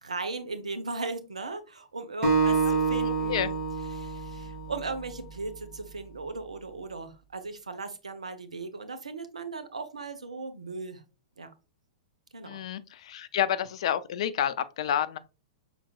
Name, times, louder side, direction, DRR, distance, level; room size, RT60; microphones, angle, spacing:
voice 1, 0.0-3.6 3.9-11.0 11.4-11.5 12.3-12.6, right 3 dB, 85° right, 0.8 m, -37 dB
Acoustic guitar, 2.2-5.5, right 4 dB, 30° right, 1.8 m, -28 dB
voice 2, 2.7-3.5 12.4-15.2, left 10 dB, 60° left, 0.4 m, -30 dB
5.8 x 3.8 x 2.3 m
hypercardioid pair, 110°, 4 cm